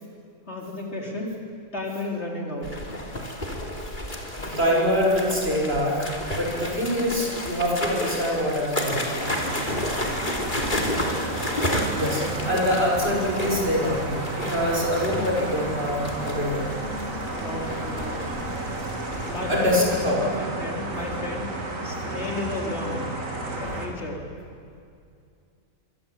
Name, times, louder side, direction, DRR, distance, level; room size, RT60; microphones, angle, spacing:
voice 1, 0.5-1.4 1.7-2.8 10.8-11.2 12.2-12.5 15.2-15.5 17.3-18.2 19.2-23.1 23.4-24.2, left 2 dB, 50° left, -1 dB, 4.6 m, -33 dB
sound 1, 2.6-20.0, left 1 dB, 35° left, 3.5 m, -32 dB
voice 2, 4.1-9.3 11.9-12.2 12.5-16.6 19.5-20.2, equal, 45° right, -2 dB, 6.7 m, -25 dB
sound 2, 9.2-23.9, right 2 dB, 65° right, 3.6 m, -32 dB
25.5 x 25.0 x 8.7 m, 2.4 s
omnidirectional pair, 1.5 m